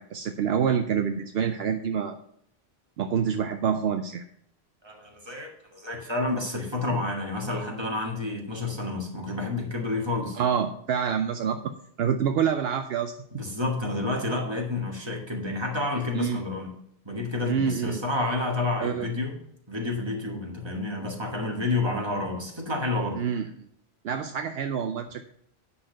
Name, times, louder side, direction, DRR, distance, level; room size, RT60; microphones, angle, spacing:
voice 1, 0.0-2.2 3.0-4.2 10.4-11.7 12.0-13.1 16.1-16.4 17.5-18.0 18.8-19.1 23.2-23.5 24.0-25.2, right 7 dB, 70° right, 8 dB, 0.8 m, -27 dB
voice 2, 4.8-10.4 13.3-16.7 17.1-19.4 19.7-23.2, left 2 dB, 25° right, 0 dB, 2.0 m, -29 dB
10.0 x 4.3 x 6.5 m, 0.68 s
omnidirectional pair, 1.1 m